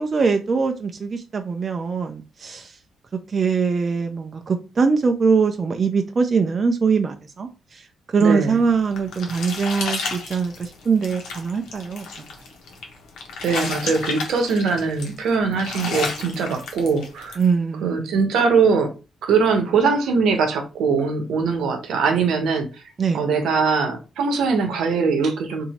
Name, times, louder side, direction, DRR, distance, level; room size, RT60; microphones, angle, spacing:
voice 1, 0.0-2.8 3.3-7.8 8.1-12.1 17.4-18.2 23.0-23.3, right 5 dB, 45° right, 0.4 m, -22 dB
voice 2, 8.2-8.6 13.4-17.4 17.8-18.9 19.2-22.7 23.1-25.7, right 5 dB, 80° right, 0.9 m, -21 dB
sound 1, 8.6-17.5, left 4 dB, 80° left, 1.0 m, -32 dB
2.8 x 2.6 x 4.1 m
cardioid pair, 75°, 0 cm